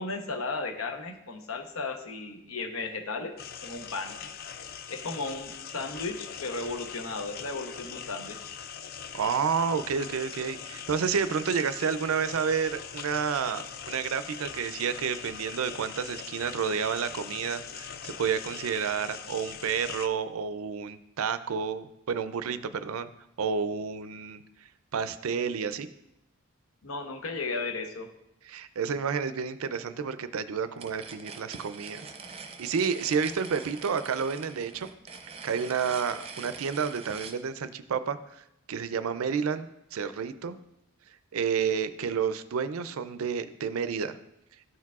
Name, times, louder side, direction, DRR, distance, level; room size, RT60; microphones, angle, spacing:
voice 1, 0.0-3.3 3.6-4.2 4.9-8.5 26.8-28.1, left 3 dB, 70° left, 5 dB, 0.9 m, -35 dB
sound 1, 3.4-20.1, left 7 dB, 45° left, 0.4 m, -42 dB
voice 2, 9.1-23.1 23.4-24.4 24.9-25.9 28.5-32.1 32.3-34.9 35.4-39.7 39.9-40.6 41.3-44.2, right 6 dB, 80° right, 12 dB, 0.4 m, -30 dB
sound 2, 30.8-37.4, right 4 dB, 30° right, 0.6 m, -44 dB
12.5 x 4.6 x 2.4 m, 0.83 s
head